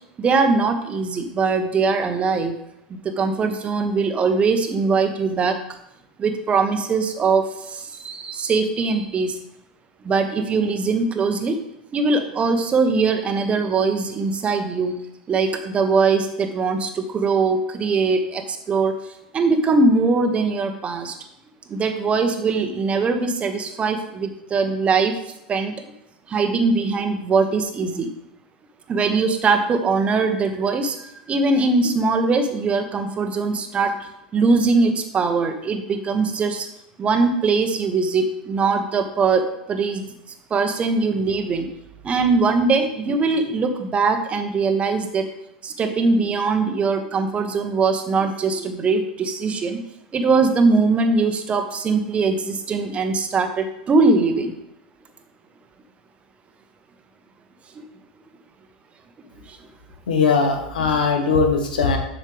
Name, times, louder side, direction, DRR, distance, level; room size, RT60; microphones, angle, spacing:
voice 1, 0.2-2.6 2.9-5.8 6.2-9.4 10.0-11.6 11.9-15.0 15.3-18.9 19.3-21.2 21.7-25.1 25.5-25.8 26.3-28.1 28.9-34.0 34.3-36.7 37.0-40.1 40.5-41.7 42.0-45.2 45.6-49.8 50.1-54.5 57.7-57.8 59.5-59.6, right 4 dB, 25° right, 7 dB, 1.0 m, -21 dB
voice 2, 60.1-62.0, left 5 dB, 75° left, 4 dB, 1.3 m, -19 dB
7.6 x 6.3 x 3.4 m, 0.83 s
hypercardioid pair, 90°, 5 cm